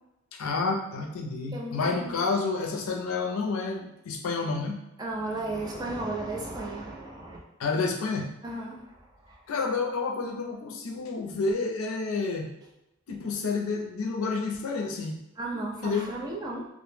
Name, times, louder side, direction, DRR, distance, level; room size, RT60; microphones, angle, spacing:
voice 1, 0.3-4.8 7.6-8.3 9.5-12.5 13.1-15.2 15.8-16.1, left 4 dB, 80° left, 1 dB, 0.4 m, -29 dB
voice 2, 1.5-2.1 5.0-7.4 8.4-9.0 9.3-9.4 15.4-16.7, right 2 dB, 20° right, -2 dB, 0.4 m, -34 dB
2.0 x 2.0 x 3.1 m, 0.89 s
head